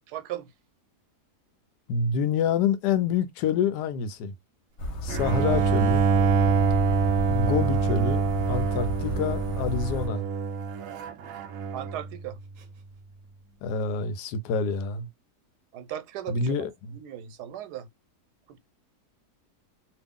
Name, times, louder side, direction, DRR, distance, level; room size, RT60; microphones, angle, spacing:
voice 1, 0.1-0.5 5.2-5.4 11.7-12.4 15.7-16.7 16.9-17.9 18.5-18.6, right 11 dB, 85° right, 1.2 m, -38 dB
voice 2, 1.9-4.3 5.0-6.1 7.3-8.2 8.5-10.3 13.6-15.1 16.3-17.0, left 6 dB, 90° left, 1.2 m, -27 dB
sound 1, 4.8-10.1, left 1 dB, 55° left, 0.9 m, -33 dB
Bowed string instrument, 5.1-12.1, right 5 dB, 65° right, 0.9 m, -25 dB
2.9 x 2.4 x 3.5 m
omnidirectional pair, 1.7 m